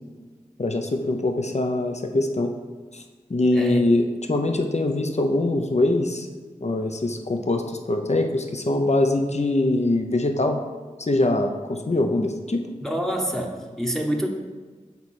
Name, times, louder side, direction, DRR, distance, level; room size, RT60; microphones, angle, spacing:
voice 1, 0.6-2.5 2.9-3.0 3.3-6.3 6.6-10.6 11.0-12.6, left 2 dB, 55° left, 4 dB, 0.7 m, -23 dB
voice 2, 3.5-3.8 12.8-14.3, equal, 5° left, 0 dB, 0.9 m, -27 dB
7.0 x 4.6 x 4.3 m, 1.4 s
wide cardioid pair, 40°, 14 cm